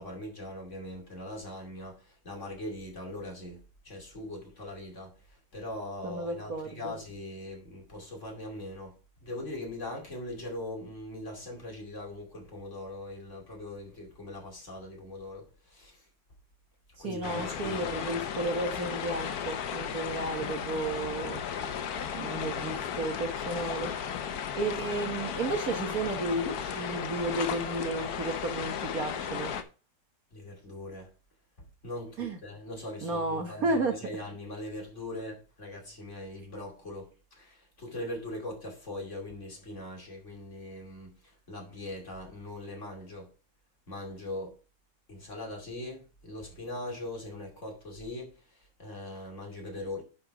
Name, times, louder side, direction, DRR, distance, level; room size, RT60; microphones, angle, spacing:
voice 1, 0.0-9.0 9.2-16.1 17.0-18.3 30.3-31.1 31.8-43.3 43.9-44.6 45.1-50.0, left 1 dB, 40° left, 2.9 m, -41 dB
voice 2, 6.0-6.9 17.0-21.4 22.1-23.9 24.6-29.5 32.2-32.4 33.0-33.9, right 2 dB, 55° right, 1.5 m, -33 dB
sound 1, 17.2-29.6, left 8 dB, 60° left, 1.3 m, -35 dB
10.5 x 4.4 x 4.6 m
omnidirectional pair, 2.0 m